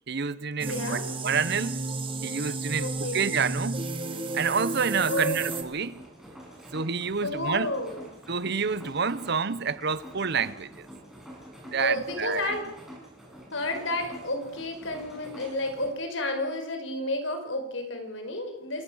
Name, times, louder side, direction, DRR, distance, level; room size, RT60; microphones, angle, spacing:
voice 1, 0.1-1.8 2.2-3.9 4.3-6.0 6.7-7.7 8.3-10.9 11.7-12.5, right 5 dB, 60° right, 0.9 m, -28 dB
voice 2, 0.6-1.0 2.8-3.2 5.1-5.4 7.2-8.1 11.7-12.7 13.5-18.8, left 1 dB, 85° left, 5.0 m, -31 dB
sound 1, 0.6-5.6, right 2 dB, 25° right, 2.1 m, -32 dB
sound 2, 5.3-15.9, equal, ahead, 7.1 m, -47 dB
28.0 x 17.5 x 6.4 m
head